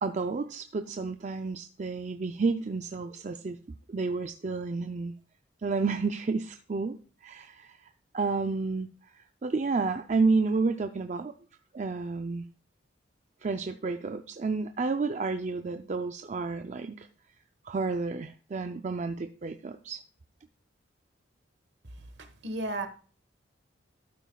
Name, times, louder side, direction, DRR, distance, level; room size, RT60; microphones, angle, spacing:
voice 1, 0.0-3.6 3.9-5.2 5.6-7.0 7.2-7.8 8.1-8.9 9.1-11.3 11.7-12.5 13.4-17.1 17.6-20.0, right 4 dB, 40° right, 8 dB, 0.4 m, -30 dB
voice 2, 22.2-22.9, right 2 dB, 60° right, 8 dB, 1.4 m, -34 dB
12.0 x 9.1 x 2.3 m, 0.39 s
head